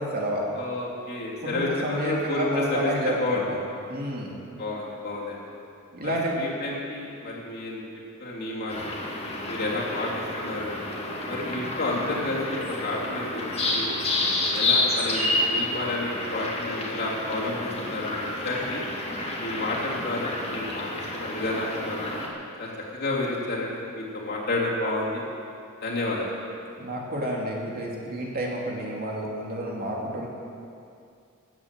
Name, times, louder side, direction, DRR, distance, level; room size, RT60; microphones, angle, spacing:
voice 1, 0.0-0.4 1.4-3.6 3.9-4.4 5.9-6.4 26.8-30.3, right 1 dB, 45° right, -2 dB, 2.5 m, -30 dB
voice 2, 0.5-2.9 3.2-3.4 4.6-5.4 6.0-7.8 8.2-8.9 9.5-10.1 10.4-10.7 11.3-13.9 14.5-18.8 19.4-22.1 22.6-25.2 25.8-26.3, left 2 dB, 50° left, -5 dB, 3.2 m, -30 dB
sound 1, 8.7-22.3, left 2 dB, 30° left, 2.1 m, -29 dB
15.0 x 9.4 x 7.6 m, 2.5 s
head